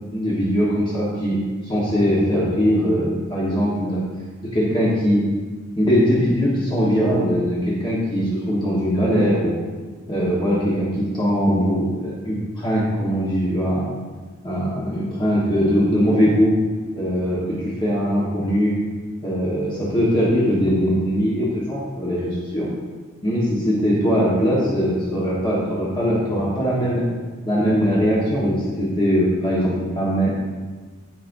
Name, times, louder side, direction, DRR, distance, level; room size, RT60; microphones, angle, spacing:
voice 1, 0.1-4.0 4.5-5.3 5.8-9.5 10.1-13.8 14.4-16.6 16.9-18.8 19.2-22.7 23.2-27.1 27.4-30.3, equal, 25° left, -7 dB, 1.4 m, -21 dB
15.5 x 5.4 x 2.7 m, 1.4 s
head